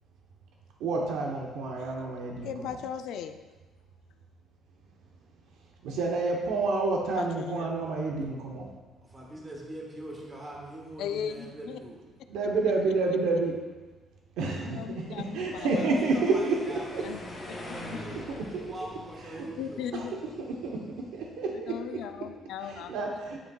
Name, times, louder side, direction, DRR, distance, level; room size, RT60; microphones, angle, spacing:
voice 1, 0.8-2.5 5.8-8.7 12.3-13.5 14.4-17.0 18.3-18.6 19.4-19.5 19.9-20.1 20.4-20.8 21.1-22.0 22.7-23.4, right 3 dB, 80° right, 0 dB, 0.9 m, -29 dB
voice 2, 2.4-3.4 7.1-7.7 11.0-11.8 14.6-16.0 17.0-17.2 17.7-17.8 19.6-20.1 21.5-22.9, left 8 dB, 75° left, 9 dB, 0.4 m, -37 dB
voice 3, 9.0-12.0 15.6-19.9, right 1 dB, 20° right, -2 dB, 1.4 m, -42 dB
sound 1, 15.0-21.2, left 1 dB, 25° left, 2.1 m, -45 dB
9.9 x 5.3 x 2.3 m, 1.2 s
cardioid pair, 160°, 0 cm